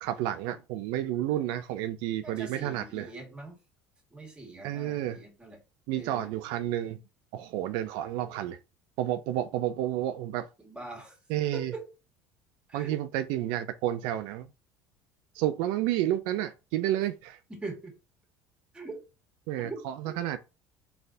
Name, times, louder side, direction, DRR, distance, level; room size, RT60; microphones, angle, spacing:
voice 1, 0.0-3.1 4.6-5.2 5.9-7.0 7.3-8.6 9.0-10.5 11.3-11.7 12.7-14.5 15.3-17.4 19.5-20.4, right 13 dB, 75° right, 0.4 m, -30 dB
voice 2, 2.2-3.5 4.1-5.6 6.0-6.3 10.6-11.2 11.5-11.9 12.7-13.0 17.5-17.9 18.7-19.0 19.6-20.2, right 3 dB, 10° right, 1.7 m, -42 dB
4.2 x 3.3 x 2.6 m
supercardioid pair, 105°, 8 cm